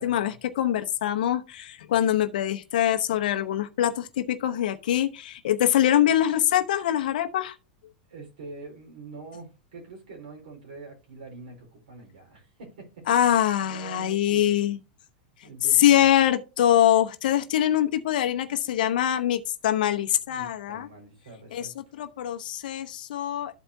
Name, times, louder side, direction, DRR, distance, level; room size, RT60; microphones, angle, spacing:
voice 1, 0.0-7.5 13.1-14.8 15.8-20.9 21.5-23.5, left 11 dB, 75° left, 0.8 m, -24 dB
voice 2, 8.1-13.0 13.6-14.5 15.4-16.3 20.3-21.7, right 3 dB, 75° right, 4.1 m, -44 dB
13.5 x 4.6 x 2.7 m
hypercardioid pair, 125°, 5 cm